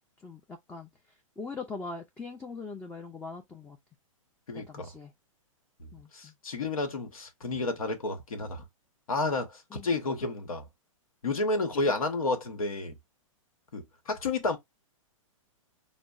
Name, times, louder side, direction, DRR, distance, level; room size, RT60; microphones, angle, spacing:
voice 1, 0.2-0.9 1.4-3.8 4.5-5.1 5.9-6.3 9.7-9.9 11.9-12.0, left 4 dB, 10° left, 0.4 m, -41 dB
voice 2, 4.5-4.9 5.8-8.6 9.1-10.7 11.2-13.0 13.7-14.6, left 3 dB, 90° left, 1.0 m, -31 dB
5.1 x 2.0 x 2.3 m
hypercardioid pair, 125°, 18 cm